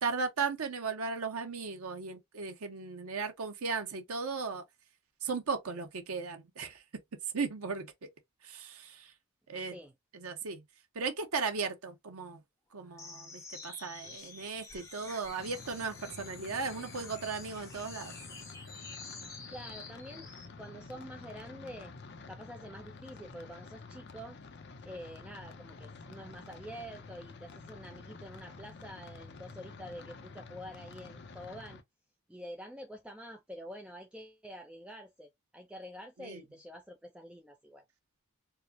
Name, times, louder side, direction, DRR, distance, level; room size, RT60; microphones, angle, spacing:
voice 1, 0.0-4.6 5.2-6.8 7.3-8.1 8.4-9.1 9.5-9.8 10.1-10.6 10.9-12.4 12.7-18.1 36.2-36.4, right 4 dB, 85° right, 0.7 m, -36 dB
voice 2, 9.6-9.9 19.5-20.3 20.6-21.9 22.3-24.4 24.8-31.8 32.3-37.8, equal, 5° right, 0.4 m, -47 dB
sound 1, 13.0-20.5, left 3 dB, 15° left, 1.0 m, -49 dB
sound 2, 15.4-31.8, left 3 dB, 50° left, 0.6 m, -49 dB
4.7 x 2.1 x 2.6 m
head